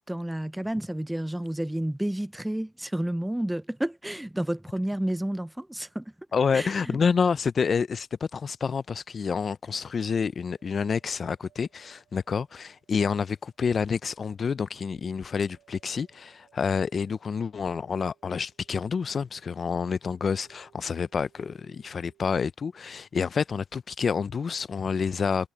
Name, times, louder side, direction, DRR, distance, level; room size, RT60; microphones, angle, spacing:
voice 1, 0.1-6.0 6.5-7.0, right 1 dB, 5° right, 0.5 m, -30 dB
voice 2, 6.3-25.5, left 6 dB, 45° left, 0.5 m, -28 dB
sound 1, 10.6-22.4, right 12 dB, 80° right, 7.6 m, -66 dB
cardioid pair, 90°, 0 cm